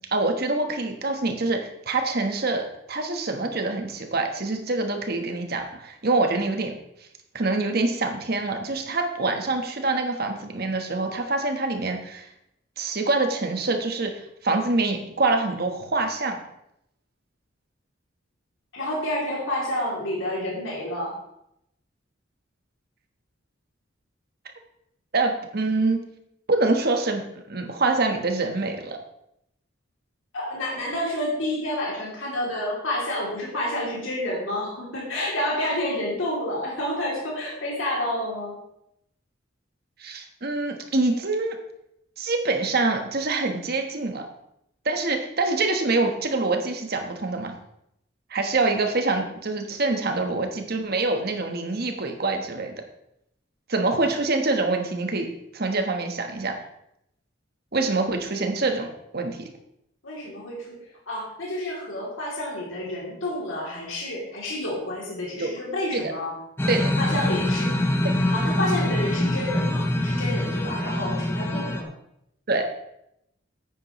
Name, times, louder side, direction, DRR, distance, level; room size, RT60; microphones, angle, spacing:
voice 1, 0.1-6.7 7.3-12.3 12.8-14.1 14.4-16.4 25.1-26.0 26.5-29.0 40.0-41.6 42.2-44.3 44.8-47.5 48.3-52.7 53.7-55.3 55.5-56.5 57.7-58.9 59.1-59.5 65.4-65.5 65.9-66.1 66.7-66.9 68.0-68.1 72.5-72.6, right 3 dB, 50° right, 5 dB, 1.2 m, -25 dB
voice 2, 18.7-21.1 30.3-38.5 58.3-58.4 60.0-60.8 61.1-66.3 67.0-67.7 68.3-71.9, left 1 dB, 80° left, -4 dB, 3.0 m, -29 dB
sound 1, 66.6-71.8, left 1 dB, 10° left, 0.8 m, -24 dB
9.8 x 8.5 x 3.1 m, 0.78 s
head